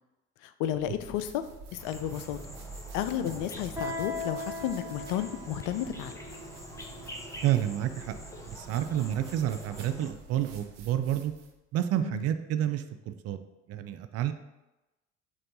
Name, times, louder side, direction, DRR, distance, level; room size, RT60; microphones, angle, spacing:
voice 1, 0.6-1.4 1.7-2.4 2.9-6.1 12.0-12.2, left 11 dB, 55° left, 11 dB, 0.4 m, -32 dB
sound 1, 0.6-11.6, right 4 dB, 75° right, 0.7 m, -49 dB
sound 2, 1.8-10.1, equal, 10° left, 0.8 m, -46 dB
Guitar, 3.8-9.2, left 2 dB, 10° right, 1.4 m, -41 dB
voice 2, 7.4-8.1 8.5-11.3 11.7-13.4 13.7-14.3, right 11 dB, 45° right, 9 dB, 0.4 m, -29 dB
4.6 x 2.4 x 4.0 m, 1.0 s
hypercardioid pair, 55°, 37 cm